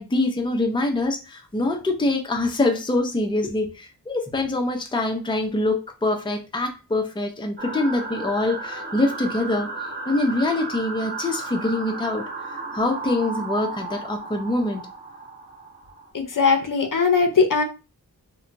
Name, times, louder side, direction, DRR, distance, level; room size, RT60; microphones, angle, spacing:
voice 1, 0.0-9.7 10.1-12.3 12.7-14.9, left 2 dB, 10° left, 0.5 m, -24 dB
sound 1, 7.6-16.1, right 3 dB, 25° right, 0.9 m, -34 dB
voice 2, 16.1-17.6, left 5 dB, 55° left, 0.6 m, -19 dB
2.8 x 2.2 x 2.5 m
cardioid pair, 45°, 40 cm